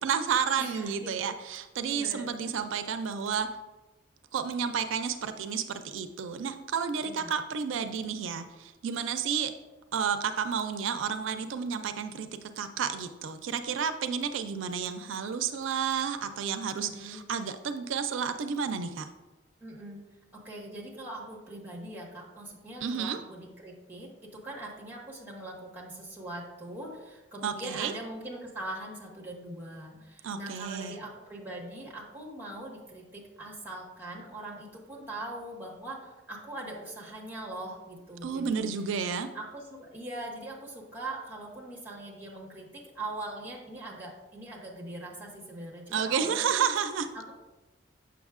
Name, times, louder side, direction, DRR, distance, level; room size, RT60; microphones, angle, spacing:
voice 1, 0.0-3.5 4.3-9.5 9.9-12.3 12.6-19.1 22.8-23.2 27.4-27.9 30.2-31.0 38.2-39.3 45.9-47.1, right 6 dB, 90° right, 9 dB, 0.4 m, -31 dB
voice 2, 0.6-1.2 1.9-2.3 7.0-7.4 16.8-17.3 19.6-20.0 20.3-38.7 39.3-46.6 47.1-47.3, right 1 dB, 10° right, -2 dB, 1.3 m, -41 dB
7.1 x 5.8 x 2.4 m, 1.1 s
head